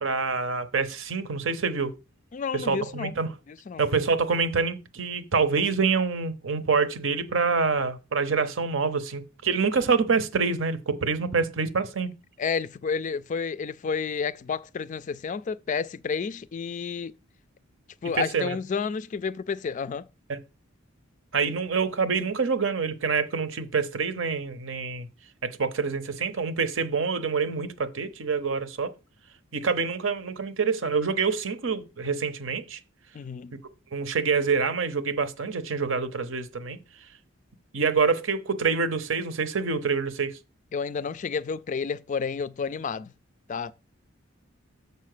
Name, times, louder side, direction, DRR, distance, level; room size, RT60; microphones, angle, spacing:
voice 1, 0.0-1.9 2.5-3.3 3.8-12.1 18.2-18.6 20.3-20.4 21.3-25.1 25.4-28.9 29.5-32.8 33.9-36.8 37.7-40.4, right 5 dB, 70° right, 0.8 m, -26 dB
voice 2, 2.3-3.1 3.5-3.8 12.4-17.1 18.0-20.0 33.1-33.6 40.7-43.1 43.5-43.7, left 5 dB, 40° left, 0.3 m, -30 dB
6.7 x 4.2 x 6.6 m
head